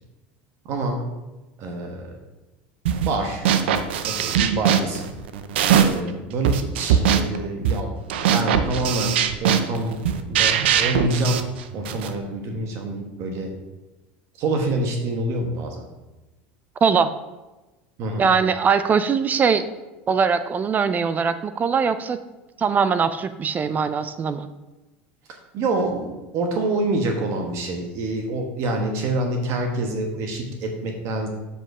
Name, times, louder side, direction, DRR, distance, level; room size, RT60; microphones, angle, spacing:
voice 1, 0.6-1.0 1.6-2.2 3.1-3.5 4.0-5.1 5.8-7.9 8.3-10.0 10.3-13.5 14.3-15.9 18.0-18.3 25.5-31.3, right 2 dB, 55° right, 3 dB, 1.3 m, -26 dB
sound 1, 2.9-3.2 3.5-6.1 6.4-12.2, right 8 dB, 85° right, 0.6 m, -21 dB
voice 2, 18.2-19.7 20.1-22.2 22.6-24.5, right 6 dB, 30° right, 12 dB, 0.4 m, -21 dB
7.4 x 5.5 x 4.8 m, 1.1 s
supercardioid pair, 105°, 6 cm